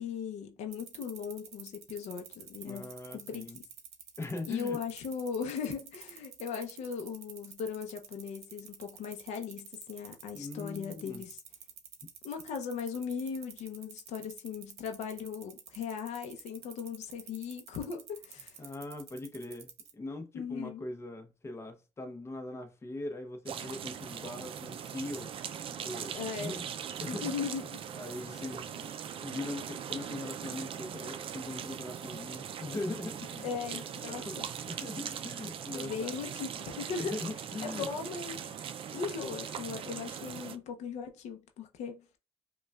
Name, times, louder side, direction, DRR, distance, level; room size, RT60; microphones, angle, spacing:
voice 1, 0.0-3.5 4.5-11.4 12.2-18.6 20.3-20.8 26.1-26.5 27.1-27.8 28.3-28.4 33.4-34.5 35.7-37.1 37.6-38.4 38.9-42.2, left 6 dB, 85° left, 0.6 m, -38 dB
sound 1, 0.7-19.9, right 8 dB, 70° right, 0.8 m, -49 dB
voice 2, 2.6-3.6 4.2-4.8 10.3-11.2 18.6-25.3 25.7-26.6 27.0-27.3 27.9-28.9 29.2-33.8 34.1-34.4 34.7-36.1 37.0-37.9, left 2 dB, 25° left, 0.7 m, -41 dB
sound 2, 23.5-40.6, right 8 dB, 50° right, 0.4 m, -40 dB
5.0 x 2.3 x 2.3 m
cardioid pair, 110°, 12 cm